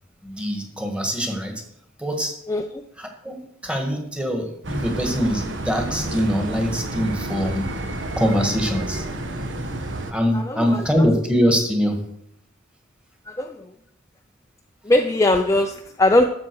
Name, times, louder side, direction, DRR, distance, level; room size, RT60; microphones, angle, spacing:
voice 1, 0.2-1.6 2.0-2.3 3.0-7.7 8.2-9.0 10.1-12.0, equal, 5° right, 3 dB, 1.6 m, -23 dB
sound 1, 4.6-10.1, right 1 dB, 70° right, 1.2 m, -30 dB
voice 2, 10.3-10.8 13.3-13.6 14.8-16.2, left 1 dB, 15° left, 4 dB, 0.5 m, -20 dB
12.0 x 7.5 x 4.6 m, 0.71 s
head